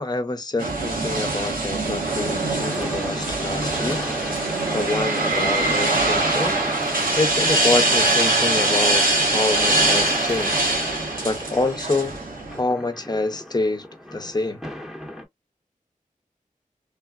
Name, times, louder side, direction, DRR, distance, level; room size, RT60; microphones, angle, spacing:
voice 1, 0.0-4.0 4.7-6.6 7.2-10.7 11.2-12.2 12.5-13.9 14.1-14.6, left 2 dB, 30° left, 0.7 m, -26 dB
sound 1, 0.6-12.6, right 2 dB, 85° right, 1.3 m, -22 dB
sound 2, 2.1-15.2, left 1 dB, ahead, 0.9 m, -35 dB
3.3 x 2.2 x 2.3 m
wide cardioid pair, 75°, 14 cm